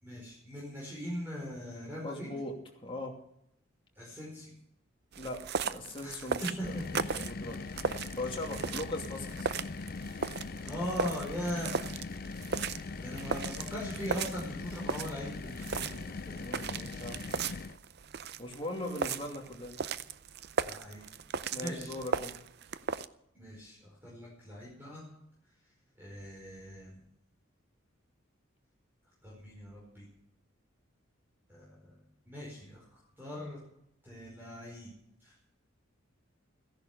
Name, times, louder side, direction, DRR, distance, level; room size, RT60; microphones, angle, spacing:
voice 1, 0.0-2.3 3.9-4.5 6.0-6.8 10.6-11.8 12.6-16.4 20.6-21.1 21.5-21.9 23.3-25.0 26.0-27.0 29.2-30.1 31.5-33.6 34.0-34.9 35.2-35.4, equal, 10° right, -4 dB, 4.8 m, -40 dB
voice 2, 2.0-2.5 2.8-3.2 5.2-7.6 8.2-9.5 13.4-13.5 16.3-17.2 18.4-19.8 21.5-22.3, left 1 dB, 25° left, 1 dB, 2.7 m, -40 dB
sound 1, 5.1-23.1, right 5 dB, 55° right, 0.6 m, -37 dB
sound 2, 6.6-17.8, left 4 dB, 45° left, 0.5 m, -41 dB
15.0 x 11.0 x 6.8 m, 0.75 s
head